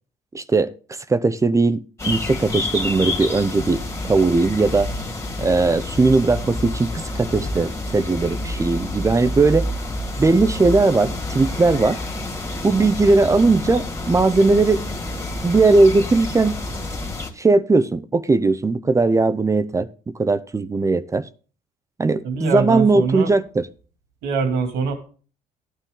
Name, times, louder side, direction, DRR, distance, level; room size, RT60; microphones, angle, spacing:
voice 1, 0.3-0.7 1.1-4.9 5.4-9.7 10.2-12.0 12.6-14.8 15.4-16.6 17.4-21.2 22.0-23.7, right 3 dB, 20° right, 15 dB, 0.6 m, -18 dB
sound 1, 2.0-17.3, left 2 dB, 20° left, 2.2 m, -28 dB
voice 2, 22.2-23.3 24.2-24.9, right 4 dB, 90° right, 5 dB, 2.8 m, -23 dB
13.5 x 9.1 x 3.9 m, 0.39 s
cardioid pair, 110°, 17 cm